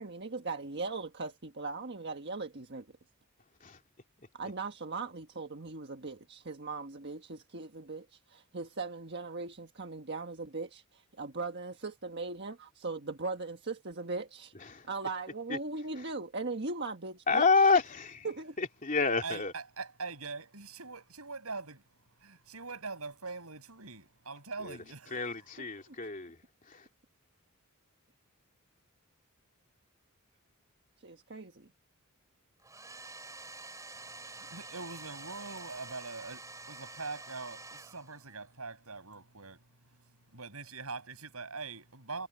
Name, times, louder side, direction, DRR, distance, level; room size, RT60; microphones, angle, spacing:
voice 1, 0.0-2.9 4.3-14.5 14.9-17.5 18.2-18.6 25.9-26.0 31.0-31.7, right 3 dB, 50° right, 1.5 m, -39 dB
voice 2, 14.5-14.9 15.5-15.6 15.9-16.1 17.3-18.3 18.6-19.5 24.6-24.8 25.1-26.4 26.7-26.9, left 4 dB, 35° left, 3.0 m, -29 dB
voice 3, 19.2-21.8 22.2-25.2 34.0-39.6 40.3-42.3, right 4 dB, 75° right, 7.1 m, -43 dB
Domestic sounds home sounds, 32.6-38.5, right 3 dB, 15° right, 4.6 m, -48 dB
head